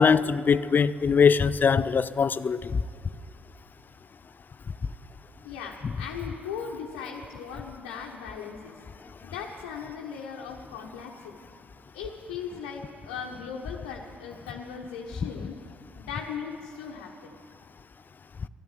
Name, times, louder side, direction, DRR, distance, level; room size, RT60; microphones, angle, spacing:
voice 1, 0.0-2.8, left 6 dB, 40° left, 0.5 m, -22 dB
voice 2, 5.4-8.8 9.2-11.5 11.9-15.6 16.0-17.3, left 6 dB, 80° left, 1.2 m, -38 dB
13.5 x 11.0 x 9.0 m
hypercardioid pair, 50°, 5 cm